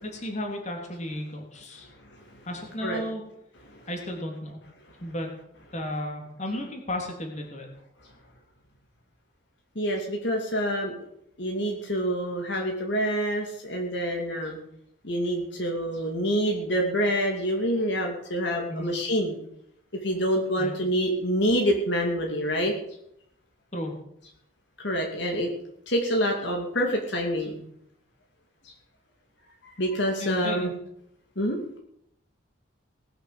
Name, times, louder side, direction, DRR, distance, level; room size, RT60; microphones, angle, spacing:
voice 1, 0.0-1.9 2.4-3.2 3.9-4.6 5.0-5.3 5.7-7.7 18.7-18.9 20.6-20.7 23.7-23.9 30.2-30.7, left 1 dB, 35° left, 2 dB, 3.2 m, -34 dB
voice 2, 9.7-11.0 11.4-14.6 15.0-19.4 20.0-22.7 24.8-25.5 25.9-27.6 28.6-28.7 29.8-30.7 31.4-31.6, equal, 60° left, 1 dB, 2.6 m, -26 dB
19.5 x 7.9 x 7.8 m, 0.75 s
head